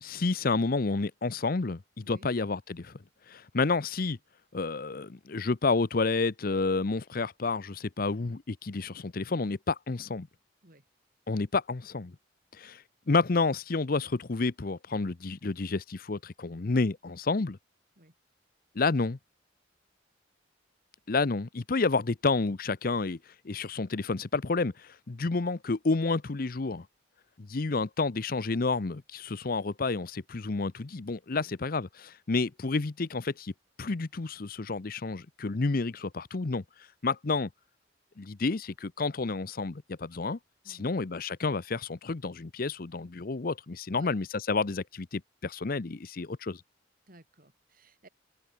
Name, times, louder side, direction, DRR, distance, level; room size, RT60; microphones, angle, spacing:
voice 1, 0.0-2.9 3.3-4.2 4.5-10.3 11.3-12.1 12.6-12.8 13.1-17.6 18.8-19.2 21.1-23.2 23.4-26.8 27.4-33.5 33.8-36.6 37.0-37.5 38.2-40.4 40.7-46.6, left 3 dB, 50° left, 0.7 m, -30 dB
voice 2, 40.6-41.0 43.9-44.2 47.1-48.1, right 1 dB, 50° right, 6.1 m, -55 dB
open air
head